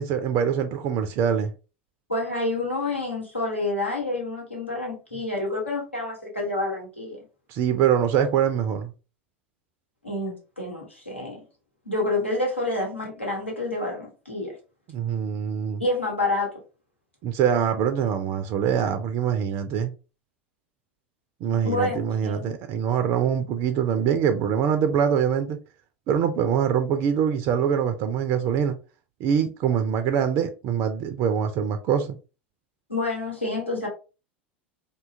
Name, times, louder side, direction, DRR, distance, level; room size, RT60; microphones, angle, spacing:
voice 1, 0.0-1.5 7.5-8.9 14.9-15.8 17.2-19.9 21.4-25.6 26.1-28.8 29.2-32.2, right 8 dB, 40° right, 0.3 m, -24 dB
voice 2, 2.1-7.2 10.0-11.4 11.8-14.5 15.8-16.5 21.6-22.6 32.9-33.9, left 2 dB, 90° left, 1.0 m, -28 dB
2.7 x 2.2 x 2.5 m
figure-of-eight pair, 80°, 6 cm